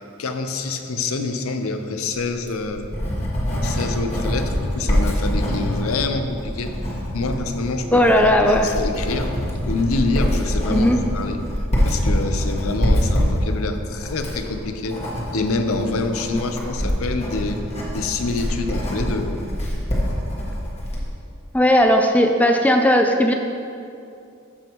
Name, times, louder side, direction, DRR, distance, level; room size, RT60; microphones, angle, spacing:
voice 1, 0.2-2.9 3.6-6.7 7.1-9.3 9.7-11.4 11.8-15.0 15.3-17.6 17.9-19.5, left 3 dB, 75° left, 7 dB, 0.6 m, -26 dB
Writing, 2.3-21.1, equal, 30° left, 1.4 m, -25 dB
voice 2, 7.9-8.7 10.7-11.0 16.3-16.4 21.5-23.3, equal, 5° left, 4 dB, 0.3 m, -16 dB
13.5 x 5.4 x 3.0 m, 2.5 s
head